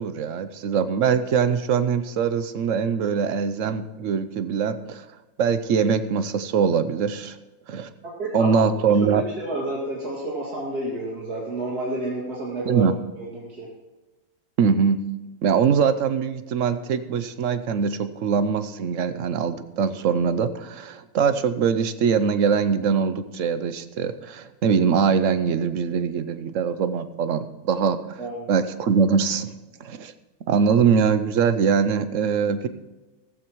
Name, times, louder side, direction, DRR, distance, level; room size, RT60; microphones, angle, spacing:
voice 1, 0.0-5.1 5.4-7.4 7.7-7.9 8.3-9.2 12.7-13.0 14.6-15.0 15.4-28.2 28.5-29.5 29.8-30.1 30.5-32.7, right 6 dB, 60° right, 11 dB, 1.0 m, -22 dB
voice 2, 8.2-8.6 9.0-12.9 13.2-13.7 28.2-28.5, right 2 dB, 90° right, -5 dB, 2.9 m, -30 dB
16.5 x 14.5 x 3.1 m, 1.1 s
omnidirectional pair, 1.6 m